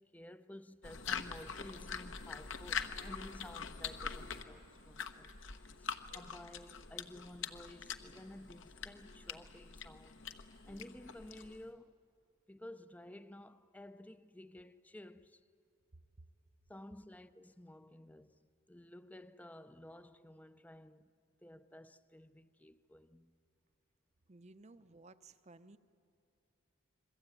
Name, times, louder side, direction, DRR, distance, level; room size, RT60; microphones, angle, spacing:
voice 1, 0.0-10.2 10.7-12.0 12.5-15.4 16.7-21.1 21.4-23.3, left 1 dB, 5° left, 0.6 m, -53 dB
sound 1, 0.8-11.7, left 6 dB, 65° left, 1.1 m, -44 dB
voice 2, 24.3-25.8, right 2 dB, 35° right, 0.7 m, -57 dB
28.0 x 22.0 x 9.1 m
head